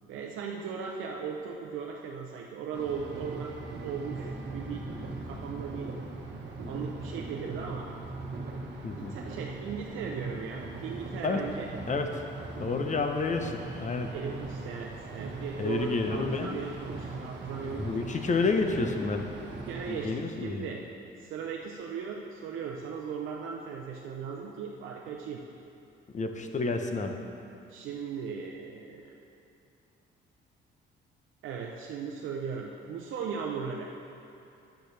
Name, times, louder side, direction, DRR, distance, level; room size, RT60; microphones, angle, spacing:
voice 1, 0.1-4.8 5.2-5.9 6.6-7.9 8.4-11.7 13.4-13.5 14.1-18.2 19.7-20.8 21.2-25.4 27.7-29.2 31.4-33.9, right 6 dB, 85° right, 0 dB, 0.7 m, -38 dB
sound 1, 2.7-20.1, right 3 dB, 60° right, 1.3 m, -40 dB
voice 2, 8.8-9.2 11.2-11.4 11.9-12.1 12.6-14.1 15.6-16.6 17.6-19.3 19.9-20.7 26.1-27.1, left 4 dB, 40° left, 5 dB, 0.8 m, -30 dB
10.0 x 9.1 x 3.3 m, 2.7 s
cardioid pair, 90°, 20 cm